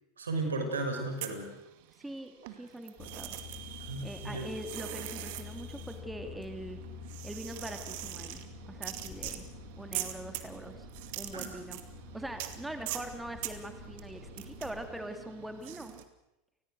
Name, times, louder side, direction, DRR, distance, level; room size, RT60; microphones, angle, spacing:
voice 1, 0.2-1.5 3.9-4.5 11.3-11.4, right 2 dB, 90° right, 4 dB, 5.7 m, -34 dB
sound 1, 1.0-2.1 2.4-16.0, right 14 dB, 65° right, 2.3 m, -43 dB
voice 2, 2.0-3.4 4.0-6.8 7.2-8.4 8.7-9.5 9.8-10.9 11.2-11.8 12.1-15.9, right 1 dB, 5° right, 6 dB, 3.0 m, -42 dB
Truck, 3.0-14.9, left 8 dB, 55° left, 4.7 m, -48 dB
29.5 x 20.0 x 6.5 m, 0.93 s
hypercardioid pair, 90°, 0 cm